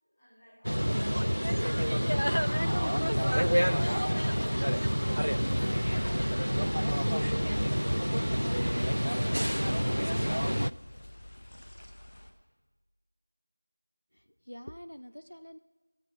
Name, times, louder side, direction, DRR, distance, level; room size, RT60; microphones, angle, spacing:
voice 1, 0.0-3.5 3.8-6.9 7.3-11.1, equal, 5° left, -15 dB, 2.3 m, -53 dB
sound 1, 0.6-10.7, equal, 85° right, 0.4 m, -28 dB
sound 2, 2.4-12.3, left 1 dB, 20° left, 0.7 m, -46 dB
voice 2, 14.1-15.6, equal, 55° left, 14 dB, 0.4 m, -46 dB
18.0 x 14.0 x 5.4 m, 1.2 s
figure-of-eight pair, 180°, 0 cm